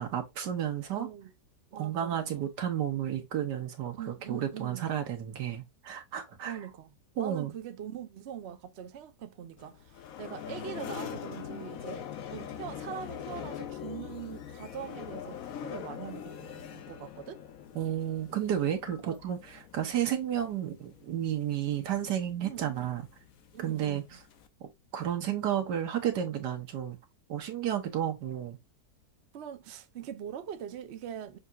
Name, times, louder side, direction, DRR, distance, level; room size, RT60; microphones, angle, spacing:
voice 1, 0.0-1.1 1.7-6.6 7.2-7.5 17.7-19.4 19.7-23.1 23.6-24.0 24.6-27.0 27.3-28.6, right 10 dB, 80° right, 1.6 m, -32 dB
voice 2, 0.9-1.3 1.7-2.4 3.9-4.9 6.4-6.9 7.2-17.4 19.1-19.2 22.4-23.0 23.5-24.2 29.3-31.4, right 9 dB, 55° right, 0.8 m, -42 dB
sound 1, 9.6-24.5, left 9 dB, 65° left, 1.0 m, -43 dB
6.4 x 2.8 x 2.3 m
omnidirectional pair, 1.8 m